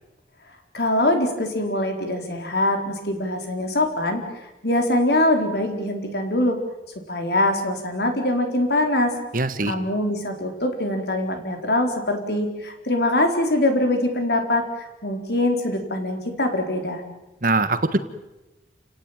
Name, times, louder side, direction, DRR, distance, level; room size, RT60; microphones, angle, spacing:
voice 1, 0.7-4.2 4.6-6.6 7.1-9.1 9.6-17.0, left 1 dB, 60° left, 5 dB, 4.4 m, -23 dB
voice 2, 9.3-9.7 17.4-18.0, right 2 dB, 50° right, 11 dB, 1.4 m, -21 dB
29.5 x 17.5 x 9.0 m, 1.1 s
head